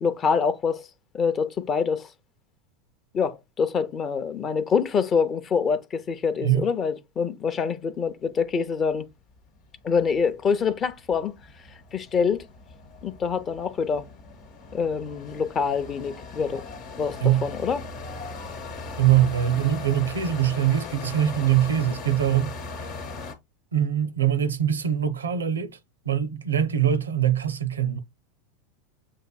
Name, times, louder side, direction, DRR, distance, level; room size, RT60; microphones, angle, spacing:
voice 1, 0.0-0.9 1.1-2.1 3.1-9.1 9.8-11.4 11.9-12.4 13.0-14.1 14.7-16.6 17.0-17.8, left 6 dB, 30° left, 0.6 m, -25 dB
sound 1, 9.1-9.2 9.5-23.3, left 3 dB, 50° left, 1.0 m, -39 dB
voice 2, 19.0-22.5 22.8-23.0 23.7-25.8 26.1-28.0, right 10 dB, 80° right, 0.5 m, -23 dB
7.4 x 2.6 x 2.2 m
figure-of-eight pair, 85°, 0 cm